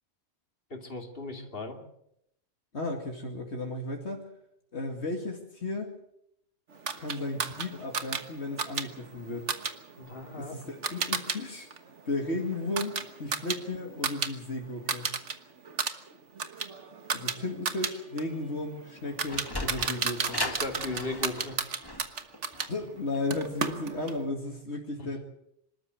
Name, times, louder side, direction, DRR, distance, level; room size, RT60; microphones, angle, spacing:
voice 1, 0.7-1.8 10.0-10.5 20.4-21.6 25.0-25.1, left 2 dB, 55° left, 3 dB, 3.0 m, -37 dB
voice 2, 2.7-4.3 4.7-5.9 7.0-9.5 10.3-11.7 12.1-15.1 17.1-20.4 22.7-25.2, left 2 dB, 70° left, 1 dB, 2.6 m, -34 dB
sound 1, 6.9-11.4 11.7-14.3 14.6-15.3 15.7-22.7 23.3-24.2, right 5 dB, 85° right, 1.7 m, -33 dB
Sliding door, 19.0-24.2, left 2 dB, 20° left, 1.9 m, -38 dB
26.0 x 13.0 x 8.0 m, 0.76 s
omnidirectional pair, 1.2 m